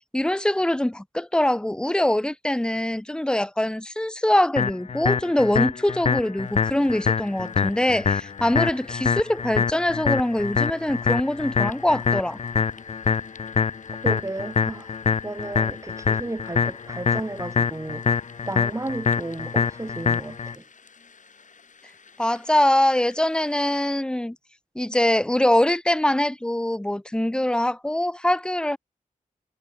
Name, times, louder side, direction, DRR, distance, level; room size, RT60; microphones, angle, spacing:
voice 1, 0.1-12.4 22.2-24.4 24.8-28.8, left 1 dB, 5° left, 0.7 m, -23 dB
sound 1, 4.6-20.5, left 6 dB, 45° left, 0.5 m, -25 dB
sound 2, 6.4-23.9, left 5 dB, 65° left, 7.0 m, -53 dB
voice 2, 14.0-18.1 18.4-20.6, right 2 dB, 20° right, 2.6 m, -33 dB
cardioid pair, 65°, 14 cm